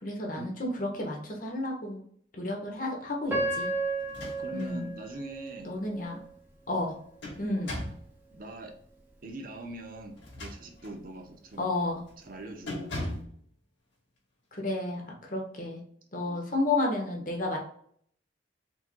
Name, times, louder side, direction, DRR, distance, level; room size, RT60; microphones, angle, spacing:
voice 1, 0.0-2.0 2.3-3.7 4.5-4.9 5.6-6.2 6.7-6.9 7.4-7.7 11.6-12.0 14.5-15.8 16.1-17.6, left 2 dB, 45° left, 0 dB, 1.2 m, -31 dB
Piano, 3.3-6.3 6.9-7.0 7.6-7.9, right 2 dB, 10° right, 1.2 m, -33 dB
sound 1, 4.0-4.8 5.2-5.3 6.7-8.1 10.1-11.0 11.5-11.8 12.1-12.3 12.7-13.4, left 1 dB, 65° left, 1.8 m, -39 dB
voice 2, 4.2-5.7 7.4-7.7 8.3-8.7 9.2-11.7 12.2-12.9 16.3-16.4, right 1 dB, 45° right, 4 dB, 0.7 m, -42 dB
4.5 x 4.3 x 2.2 m, 0.62 s
head